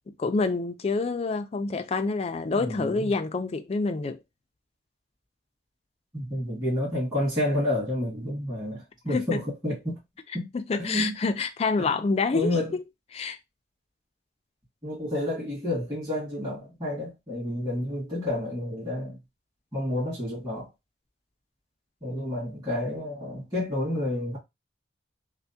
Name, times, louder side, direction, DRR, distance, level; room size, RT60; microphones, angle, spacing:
voice 1, 0.2-4.2 9.1-9.4 10.5-12.5 13.1-13.4, left 3 dB, 35° left, 0.3 m, -27 dB
voice 2, 2.6-3.1 6.1-10.0 10.3-10.5 10.8-11.1 11.8-11.9 12.3-12.8 14.8-19.2 19.7-20.7 22.0-24.4, left 1 dB, 20° right, 1.8 m, -30 dB
3.3 x 2.1 x 2.6 m
head